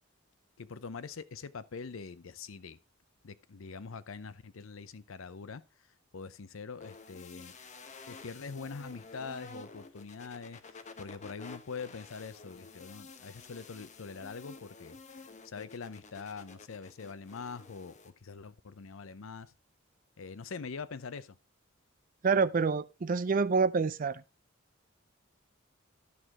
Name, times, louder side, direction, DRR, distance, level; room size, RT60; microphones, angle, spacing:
voice 1, 0.6-2.8 3.2-5.6 6.1-7.5 8.1-19.5 20.2-21.4, left 5 dB, 80° left, 0.6 m, -44 dB
sound 1, 6.8-18.1, left 3 dB, 35° left, 0.9 m, -51 dB
voice 2, 22.2-24.2, right 5 dB, 40° right, 0.5 m, -27 dB
11.0 x 6.4 x 3.6 m
head